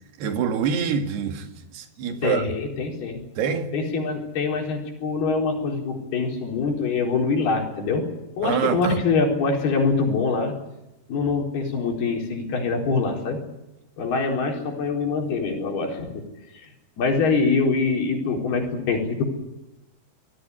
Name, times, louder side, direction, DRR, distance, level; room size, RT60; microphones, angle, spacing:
voice 1, 0.2-2.5 3.4-3.7 8.4-9.0, right 7 dB, 80° right, 4.1 m, -26 dB
voice 2, 2.2-3.2 3.7-8.1 8.4-10.5 11.1-13.4 14.0-16.3 16.5-16.7 17.0-19.2, left 4 dB, 70° left, 6.2 m, -24 dB
26.0 x 17.0 x 9.8 m
omnidirectional pair, 4.6 m